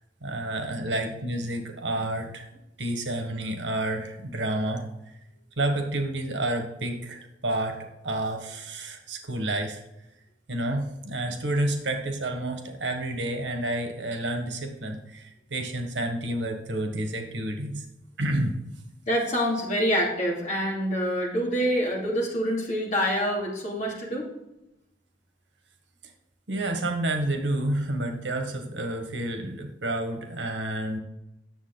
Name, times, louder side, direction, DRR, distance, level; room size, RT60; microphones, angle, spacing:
voice 1, 0.2-2.5 2.8-4.9 5.6-9.8 10.5-17.8 18.2-18.6 26.5-31.0, right 1 dB, 70° right, 5 dB, 1.4 m, -29 dB
voice 2, 19.1-24.3, equal, 40° left, -2 dB, 2.7 m, -26 dB
9.5 x 7.3 x 3.9 m, 0.91 s
head